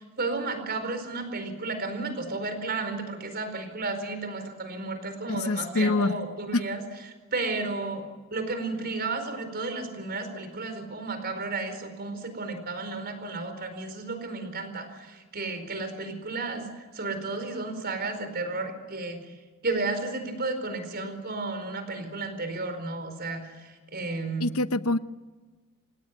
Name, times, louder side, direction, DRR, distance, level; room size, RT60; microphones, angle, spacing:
voice 1, 0.0-6.8 7.3-8.0 8.3-16.7 16.9-19.2 19.6-24.5, right 3 dB, 50° right, 8 dB, 4.6 m, -33 dB
voice 2, 5.4-6.2 6.5-6.6 24.4-25.0, left 3 dB, 85° left, 12 dB, 1.0 m, -25 dB
28.0 x 18.0 x 9.5 m, 1.3 s
head